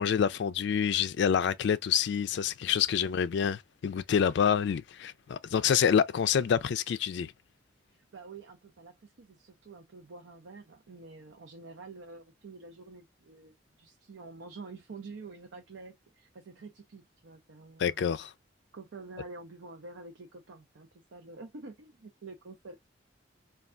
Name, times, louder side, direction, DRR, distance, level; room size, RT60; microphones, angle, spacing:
voice 1, 0.0-7.3 17.8-18.3, left 8 dB, 65° left, 0.3 m, -27 dB
voice 2, 7.9-18.0 18.7-22.9, right 3 dB, 85° right, 0.6 m, -48 dB
3.3 x 2.3 x 2.4 m
head